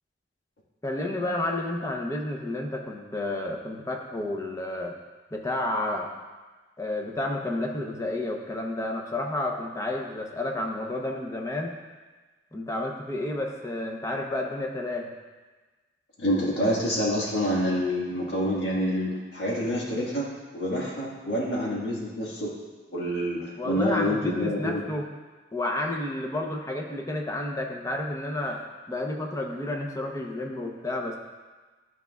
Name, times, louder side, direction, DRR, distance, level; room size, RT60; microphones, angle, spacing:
voice 1, 0.8-5.0 5.3-6.1 6.8-11.8 12.5-15.1 23.6-25.0 25.5-28.6 28.9-31.2, left 1 dB, 20° left, 1 dB, 0.7 m, -31 dB
voice 2, 16.2-22.5 22.9-24.8, equal, 70° left, -5 dB, 1.7 m, -27 dB
11.5 x 4.8 x 2.3 m, 1.3 s
head